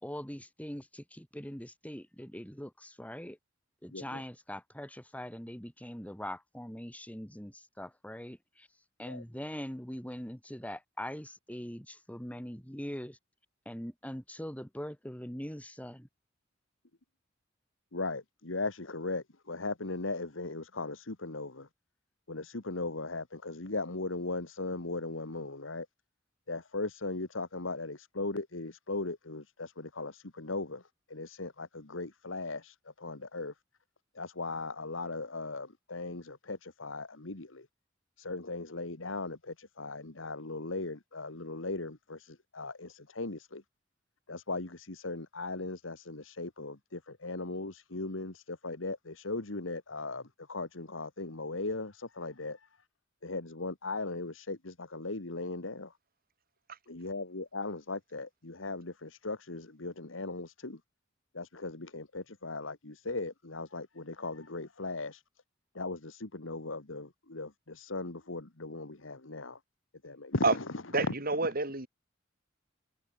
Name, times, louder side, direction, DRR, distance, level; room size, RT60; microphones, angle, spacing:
voice 1, 0.0-3.4 3.8-8.7 9.0-13.2 13.7-16.1, equal, 10° left, 4.3 m, -42 dB
voice 2, 3.9-4.2 9.1-9.2 17.9-21.7 22.3-25.9 26.5-33.5 34.1-37.7 38.2-43.6 44.3-52.7 53.2-55.9 56.9-60.8 61.3-65.2 65.7-69.6 70.0-71.1, left 3 dB, 85° left, 1.9 m, -38 dB
voice 3, 70.9-71.9, right 3 dB, 50° right, 4.5 m, -28 dB
head